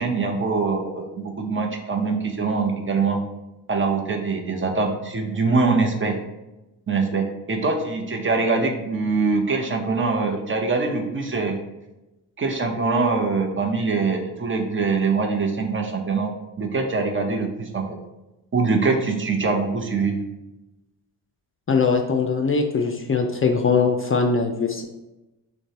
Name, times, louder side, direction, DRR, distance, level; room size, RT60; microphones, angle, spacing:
voice 1, 0.0-3.2 3.7-6.2 6.9-11.6 12.4-17.9 18.5-20.1, right 4 dB, 30° right, 2 dB, 0.7 m, -23 dB
voice 2, 21.7-24.8, left 5 dB, 30° left, 4 dB, 0.5 m, -21 dB
6.1 x 2.2 x 2.8 m, 1.0 s
cardioid pair, 70°, 41 cm